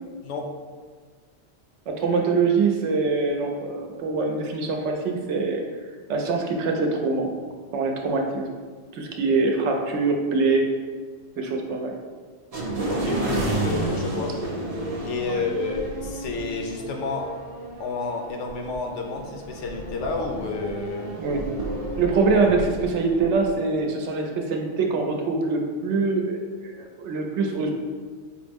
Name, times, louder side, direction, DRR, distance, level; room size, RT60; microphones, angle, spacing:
voice 1, 1.9-5.6 6.1-7.3 7.7-8.5 8.9-10.7 11.4-11.9 21.2-21.5 22.0-27.7, right 4 dB, 75° right, 2 dB, 0.9 m, -24 dB
sound 1, 12.5-23.5, right 2 dB, 45° right, 0.5 m, -31 dB
voice 2, 12.9-14.4 15.0-17.3 17.8-21.1, left 3 dB, 75° left, 3 dB, 0.9 m, -30 dB
5.0 x 2.0 x 3.4 m, 1.5 s
omnidirectional pair, 1.2 m